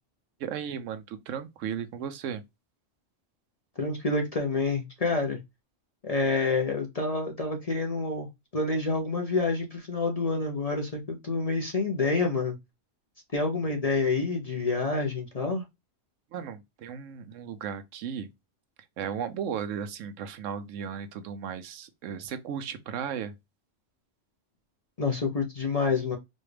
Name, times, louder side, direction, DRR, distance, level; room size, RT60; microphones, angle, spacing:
voice 1, 0.4-2.4 16.3-18.3 19.0-23.3, right 8 dB, 80° right, 0.9 m, -35 dB
voice 2, 3.8-5.4 6.0-12.6 13.3-15.6 25.0-26.2, left 3 dB, 40° left, 0.6 m, -28 dB
4.1 x 2.3 x 3.2 m
omnidirectional pair, 1.3 m